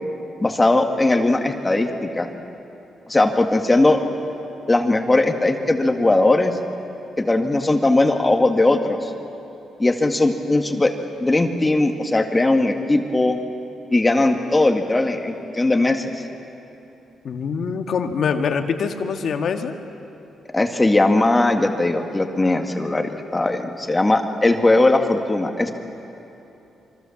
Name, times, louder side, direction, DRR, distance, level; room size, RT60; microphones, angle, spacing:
voice 1, 0.4-2.3 3.1-4.0 4.7-6.5 7.2-9.1 9.8-10.9 11.2-13.4 13.9-16.1 20.5-25.7, left 2 dB, 20° left, 4 dB, 2.0 m, -19 dB
voice 2, 17.2-19.7, left 6 dB, 65° left, 6 dB, 1.8 m, -24 dB
26.5 x 25.0 x 7.3 m, 2.9 s
cardioid pair, 100°, 0 cm